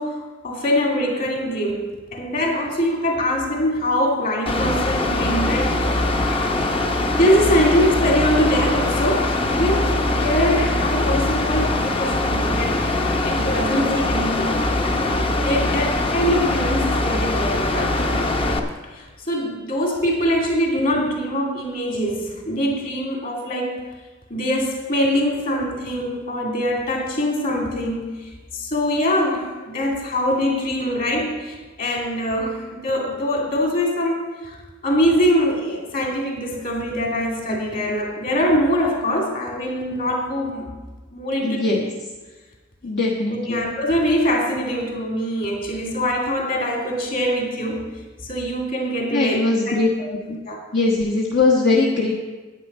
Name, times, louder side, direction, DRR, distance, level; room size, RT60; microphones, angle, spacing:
voice 1, 0.0-6.2 7.1-12.8 13.2-14.6 15.0-18.0 18.9-23.8 24.3-34.6 34.8-40.7 41.1-41.6 43.3-47.8 48.2-49.8 50.4-50.6, equal, 45° left, -1 dB, 2.7 m, -23 dB
Mechanical fan, 4.5-18.6, left 2 dB, 30° left, 0.8 m, -22 dB
voice 2, 41.4-41.8 42.8-43.6 49.1-49.9 50.3-50.4 50.7-52.1, left 3 dB, 60° left, -3 dB, 1.3 m, -20 dB
10.5 x 9.2 x 5.4 m, 1.3 s
head